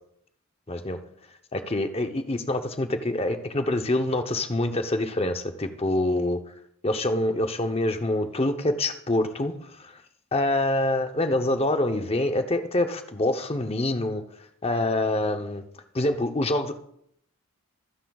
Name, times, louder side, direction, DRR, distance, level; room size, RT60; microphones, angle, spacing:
voice 1, 0.7-1.0 1.5-6.4 6.8-10.0 10.3-14.2 14.6-15.6 15.9-16.7, left 1 dB, 25° left, 7 dB, 0.7 m, -26 dB
24.0 x 9.7 x 2.3 m, 0.72 s
head